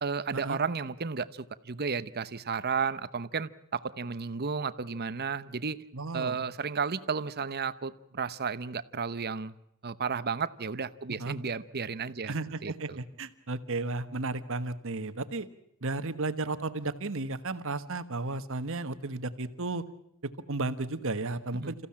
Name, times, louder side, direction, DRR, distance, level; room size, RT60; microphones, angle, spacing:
voice 1, 0.0-5.8 6.1-9.5 9.8-12.3 12.6-13.0 21.6-21.7, right 5 dB, 45° right, 15 dB, 0.9 m, -33 dB
voice 2, 5.9-6.4 11.2-11.3 12.3-15.5 15.8-19.8 20.2-21.9, right 3 dB, 65° right, 11 dB, 1.3 m, -34 dB
28.0 x 15.5 x 8.7 m, 0.78 s
head